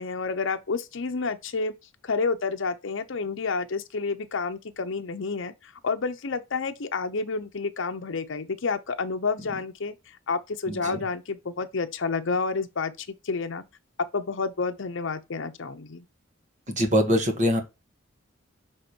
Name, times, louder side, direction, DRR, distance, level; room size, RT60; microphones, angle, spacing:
voice 1, 0.0-1.7 2.0-9.9 10.3-13.6 14.1-16.0, left 4 dB, 65° left, 0.7 m, -29 dB
voice 2, 10.7-11.0 16.7-17.6, equal, 40° right, 1.5 m, -23 dB
6.6 x 3.7 x 4.4 m
head